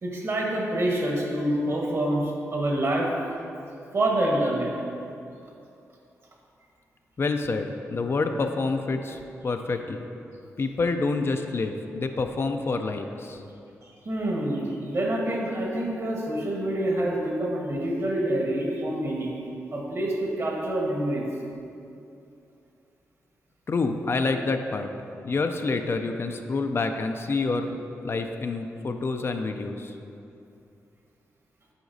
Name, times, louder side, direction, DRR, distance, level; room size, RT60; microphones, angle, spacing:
voice 1, 0.0-3.1 3.9-4.7 14.0-19.3 19.7-21.2, right 1 dB, 50° right, -2 dB, 1.3 m, -26 dB
voice 2, 7.2-10.0 10.6-13.4 23.7-24.9 25.2-30.0, left 3 dB, 45° left, 6 dB, 0.4 m, -28 dB
7.7 x 4.9 x 2.7 m, 2.7 s
cardioid pair, 60°, 6 cm